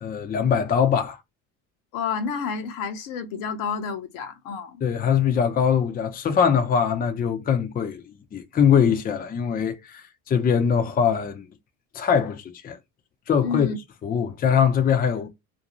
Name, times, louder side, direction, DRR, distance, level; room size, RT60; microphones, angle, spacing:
voice 1, 0.0-1.2 4.8-11.4 11.9-12.8 13.3-13.7 14.0-15.3, left 7 dB, 25° left, 0.5 m, -22 dB
voice 2, 1.9-4.8 13.4-13.8, left 6 dB, 65° left, 0.8 m, -30 dB
2.6 x 2.2 x 2.9 m
supercardioid pair, 90°, 38 cm